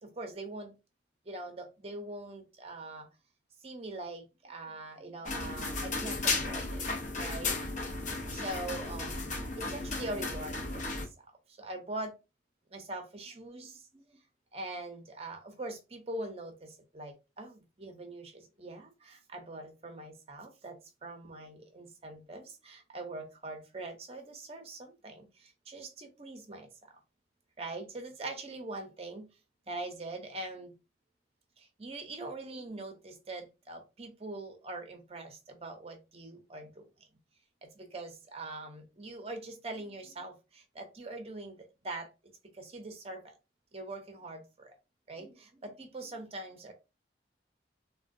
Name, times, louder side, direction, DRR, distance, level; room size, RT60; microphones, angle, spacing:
voice 1, 0.0-0.7 1.3-3.1 3.6-6.8 7.2-7.6 8.3-11.1 11.6-12.1 12.7-14.2 14.5-26.7 27.6-29.3 29.7-30.7 31.6-36.9 37.6-43.3 43.7-44.7 45.1-46.7, right 2 dB, 35° right, 0.7 m, -43 dB
sound 1, 5.3-11.1, left 3 dB, 40° left, 0.6 m, -34 dB
3.6 x 2.2 x 2.5 m
head